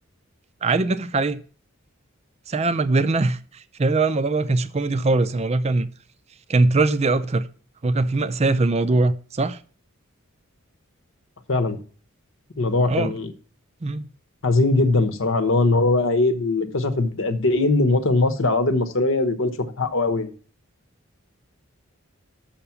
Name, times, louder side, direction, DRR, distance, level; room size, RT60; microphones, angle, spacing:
voice 1, 0.6-1.4 2.5-5.9 6.5-7.5 7.8-9.6 12.9-13.1 13.8-14.1, right 3 dB, 30° right, 0.4 m, -21 dB
voice 2, 12.6-13.3 14.4-19.5 19.8-20.3, left 2 dB, 60° left, 1.0 m, -20 dB
6.9 x 5.8 x 7.0 m
head